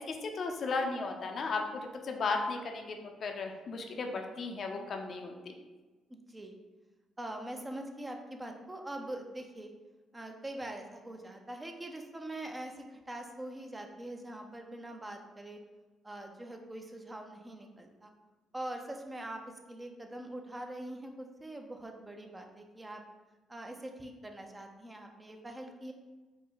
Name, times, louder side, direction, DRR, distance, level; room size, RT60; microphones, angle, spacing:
voice 1, 0.0-5.5, left 3 dB, 55° left, 4 dB, 0.5 m, -35 dB
voice 2, 6.1-6.6 7.2-9.7 10.1-15.6 16.0-18.1 18.5-19.4 19.7-23.0 23.5-25.9, right 1 dB, 15° right, 4 dB, 0.5 m, -43 dB
5.1 x 2.1 x 3.8 m, 1.2 s
cardioid pair, 90°, 0 cm